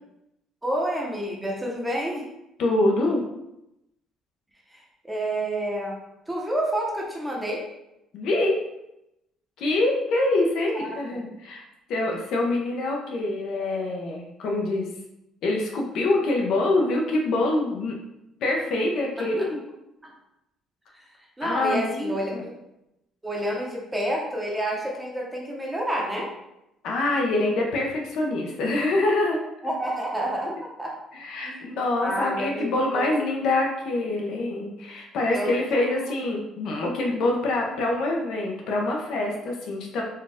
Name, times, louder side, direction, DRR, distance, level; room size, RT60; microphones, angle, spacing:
voice 1, 0.6-2.3 4.7-6.0 6.3-7.6 10.7-11.3 19.2-19.5 20.0-20.1 20.9-21.1 21.4-22.5 23.2-26.3 29.6-31.0 31.4-31.7 32.0-33.2 35.3-36.1, right 1 dB, 10° right, -2 dB, 0.8 m, -29 dB
voice 2, 2.6-3.2 8.1-8.6 9.6-11.6 11.9-14.9 15.4-17.9 18.4-19.6 21.4-22.4 26.8-29.4 31.1-40.0, left 2 dB, 70° left, 0 dB, 0.8 m, -25 dB
4.4 x 2.4 x 3.5 m, 0.87 s
cardioid pair, 135°, 0 cm